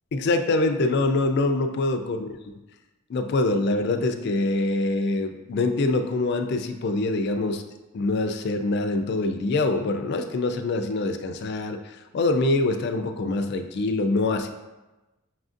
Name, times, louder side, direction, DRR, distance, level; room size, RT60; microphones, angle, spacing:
voice 1, 0.1-2.3 3.1-7.6 7.9-14.5, left 2 dB, 50° left, 7 dB, 0.3 m, -24 dB
5.8 x 2.5 x 2.4 m, 1.1 s
head